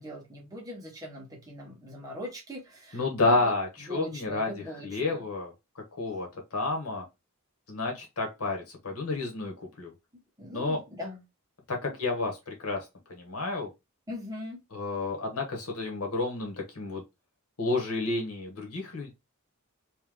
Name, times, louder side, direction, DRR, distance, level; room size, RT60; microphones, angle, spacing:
voice 1, 0.0-5.3 10.1-11.2 11.9-12.0 14.1-14.6, left 1 dB, 15° right, 1.3 m, -41 dB
voice 2, 2.9-5.5 6.0-7.0 7.7-9.9 10.5-10.8 11.7-13.7 14.7-17.0 17.6-19.1, left 3 dB, 85° left, 1.4 m, -30 dB
3.4 x 2.9 x 3.6 m
head